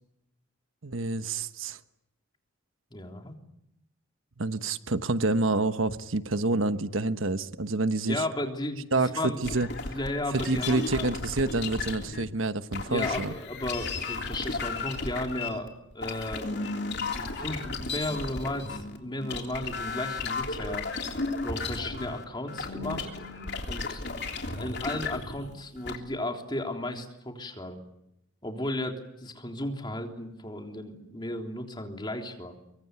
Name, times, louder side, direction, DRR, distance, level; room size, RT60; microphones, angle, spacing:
voice 1, 0.8-1.8 4.4-8.2 8.9-9.7 10.3-13.3, right 2 dB, 75° right, 10 dB, 1.2 m, -28 dB
voice 2, 2.9-3.3 8.1-8.9 9.1-9.5 9.8-11.1 12.9-16.7 17.1-20.9 21.4-23.1 23.7-24.0 24.5-27.8 28.4-32.5, left 1 dB, 20° left, 3 dB, 3.5 m, -34 dB
sound 1, 9.4-12.3 12.7-26.0, left 3 dB, 55° left, 3.3 m, -34 dB
25.5 x 24.0 x 9.4 m, 0.83 s
head